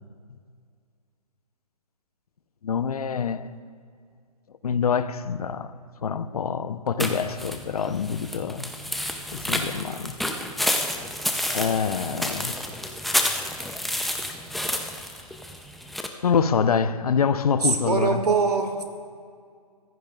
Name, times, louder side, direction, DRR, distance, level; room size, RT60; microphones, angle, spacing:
voice 1, 2.6-3.5 4.6-5.7 6.0-8.7 9.3-10.2 11.5-12.6 16.2-18.2, left 6 dB, 75° left, 0.8 m, -25 dB
sound 1, 7.0-16.1, left 1 dB, ahead, 0.5 m, -29 dB
voice 2, 17.6-18.9, right 4 dB, 90° right, 2.0 m, -23 dB
24.0 x 15.5 x 2.4 m
hypercardioid pair, 140°, 20 cm